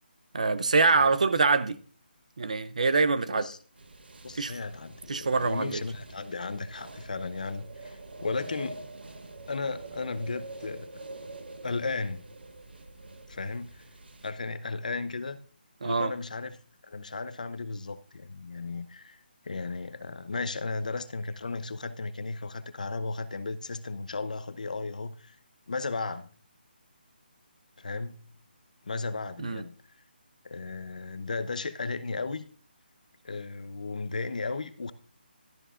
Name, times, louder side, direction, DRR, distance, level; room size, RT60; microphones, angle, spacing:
voice 1, 0.3-1.8 2.4-3.5 4.4-4.5 5.1-5.8 15.8-16.1 29.4-29.6, right 4 dB, 45° right, 0.6 m, -24 dB
sound 1, 3.8-14.3, right 2 dB, 75° right, 1.4 m, -46 dB
voice 2, 4.2-8.8 9.5-11.0 11.6-12.2 13.3-13.8 14.2-15.4 15.8-16.6 16.8-25.4 25.7-26.3 27.8-28.2 28.8-29.7 30.4-32.4 33.2-34.9, left 3 dB, 50° left, 0.7 m, -35 dB
12.5 x 11.0 x 2.5 m
hypercardioid pair, 180°, 6 cm